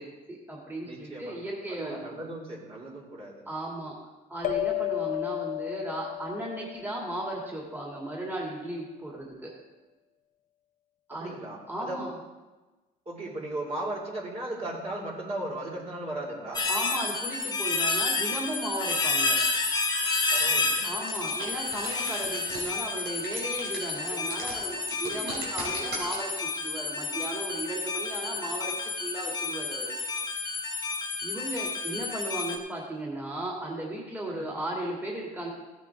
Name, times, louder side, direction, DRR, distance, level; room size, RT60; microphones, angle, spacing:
voice 1, 0.0-2.0 3.5-3.9 4.3-9.5 11.1-11.3 11.7-12.1 16.7-19.4 20.8-29.9 31.2-35.5, right 1 dB, 10° right, -3 dB, 2.5 m, -36 dB
voice 2, 0.8-1.5 1.8-3.4 11.1-12.0 13.1-16.7 20.3-20.9 24.1-24.2 25.0-26.0 34.3-34.5, right 1 dB, 35° right, -3 dB, 2.7 m, -37 dB
sound 1, 4.4-7.4, left 15 dB, 50° left, 0.9 m, -33 dB
sound 2, 16.5-32.6, left 3 dB, 20° left, 1.5 m, -30 dB
sound 3, 19.4-20.1 20.3-20.4 20.8-26.2, right 4 dB, 85° right, 3.6 m, -38 dB
15.0 x 8.2 x 3.7 m, 1.2 s
cardioid pair, 110°, 17 cm